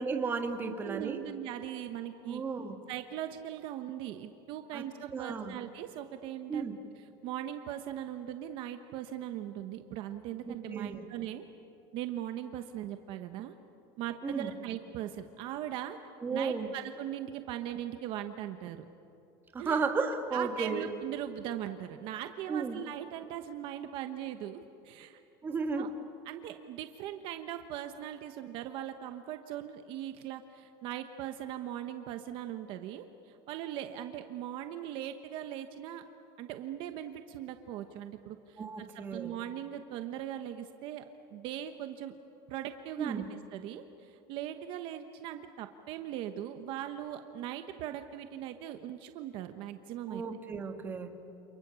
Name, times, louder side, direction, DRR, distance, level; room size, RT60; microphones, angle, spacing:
voice 1, 0.0-1.2 2.3-2.8 4.7-4.8 5.1-5.5 6.5-6.7 10.5-11.1 14.2-14.5 16.2-16.7 19.5-20.9 22.5-22.8 25.4-25.9 38.6-39.3 43.0-43.3 50.1-51.1, right 5 dB, 20° right, 4 dB, 1.9 m, -34 dB
voice 2, 0.6-2.4 2.9-11.4 11.9-13.5 14.0-16.0 16.3-18.9 19.6-19.8 20.3-25.2 25.7-25.9 26.2-36.0 36.4-41.0 41.3-42.1 42.5-50.2, right 11 dB, 50° right, 7 dB, 1.2 m, -40 dB
29.5 x 28.5 x 7.1 m, 2.8 s
cardioid pair, 160°, 11 cm